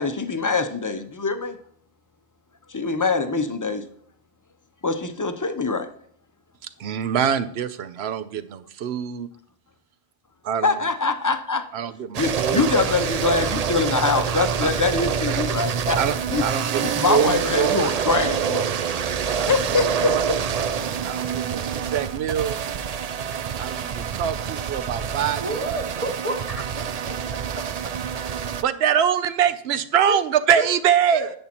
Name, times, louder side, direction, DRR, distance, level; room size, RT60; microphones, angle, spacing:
voice 1, 0.0-1.6 2.7-3.8 4.8-5.9 10.6-11.6 12.2-16.0 16.3-16.4 16.8-18.7 19.2-20.4, left 4 dB, 25° left, 8 dB, 0.5 m, -24 dB
voice 2, 6.8-9.3 10.4-10.9 11.7-11.9 12.4-12.7 14.3-14.7 15.3-15.4 16.0-17.9 19.4-19.6 19.9-20.2 21.0-22.6 23.6-25.8 28.6-31.3, right 8 dB, 80° right, 13 dB, 0.9 m, -24 dB
sound 1, 12.1-28.6, right 7 dB, 55° right, 0.5 m, -26 dB
voice 3, 25.4-27.9 30.1-30.2 30.5-30.7 31.1-31.3, right 1 dB, 35° right, 1 dB, 1.3 m, -31 dB
10.5 x 8.6 x 2.9 m, 0.63 s
omnidirectional pair, 1.1 m